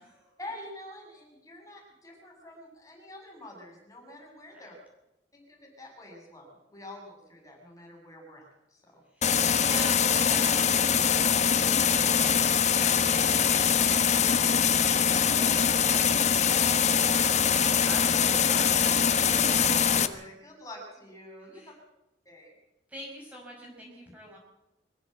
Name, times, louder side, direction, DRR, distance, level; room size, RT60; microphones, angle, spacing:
voice 1, 0.4-4.7 5.3-8.4 8.7-9.0 19.4-21.6 22.3-22.5, left 1 dB, 20° left, 0 dB, 7.3 m, -46 dB
voice 2, 9.1-12.5 12.7-19.4 21.5-21.7 22.9-24.4, equal, 10° right, -2 dB, 5.5 m, -43 dB
sound 1, 9.2-20.1, left 7 dB, 40° left, 1.3 m, -23 dB
25.0 x 15.0 x 8.0 m, 0.91 s
head